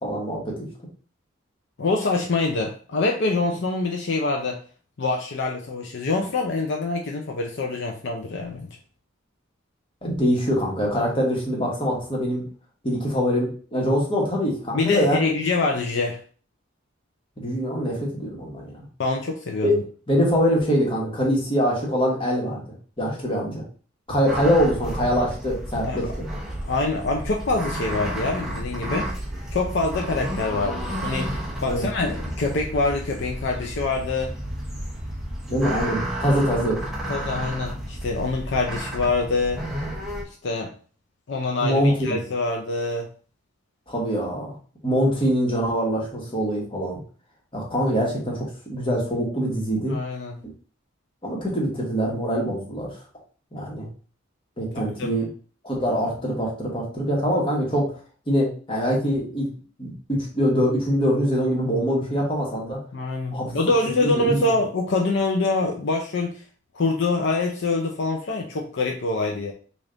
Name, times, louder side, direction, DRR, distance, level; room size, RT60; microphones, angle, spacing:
voice 1, 0.0-0.5 10.0-12.4 12.8-15.3 17.4-18.7 19.6-19.7 20.1-22.6 23.0-23.6 24.1-26.1 31.7-31.9 35.5-36.8 41.6-42.2 43.9-44.5 44.8-47.0 47.5-50.0 51.2-52.9 53.5-53.9 54.6-55.3 55.6-57.9 58.3-59.5 59.8-62.8 63.3-63.5 64.0-64.4, equal, 25° left, -2 dB, 1.2 m, -24 dB
voice 2, 1.8-4.6 5.0-8.7 14.7-16.2 19.0-19.8 25.9-26.1 26.6-29.1 29.5-34.3 37.1-39.6 40.4-40.7 41.3-43.1 49.9-50.4 55.0-55.2 62.9-66.4 66.7-69.5, left 3 dB, 60° left, 1 dB, 0.5 m, -25 dB
sound 1, 24.3-40.2, equal, ahead, 0.7 m, -31 dB
3.4 x 2.5 x 3.8 m, 0.41 s
head